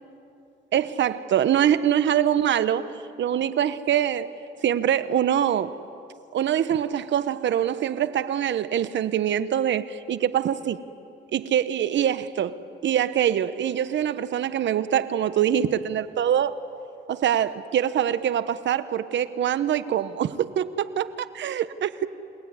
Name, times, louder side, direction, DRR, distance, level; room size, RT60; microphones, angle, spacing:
voice 1, 0.7-4.3 4.6-5.8 6.3-10.8 11.3-16.5 17.1-22.1, right 10 dB, 65° right, 1.1 m, -24 dB
28.5 x 19.5 x 9.6 m
cardioid pair, 90°, 20 cm